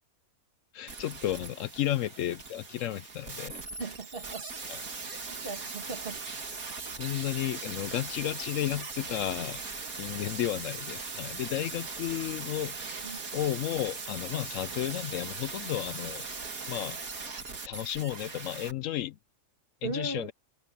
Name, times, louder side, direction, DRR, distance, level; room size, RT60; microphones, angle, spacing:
voice 1, 0.7-3.5 4.7-4.8 7.0-12.9 13.3-16.2 16.7-17.0 17.7-19.2 19.8-20.3, left 12 dB, 70° left, 0.9 m, -33 dB
sound 1, 0.9-18.7 19.0-19.1, right 4 dB, 85° right, 2.8 m, -40 dB
voice 2, 3.8-4.5 5.1-6.2 7.1-7.2 13.0-13.2 19.8-20.3, right 3 dB, 45° right, 1.7 m, -38 dB
omnidirectional pair, 1.5 m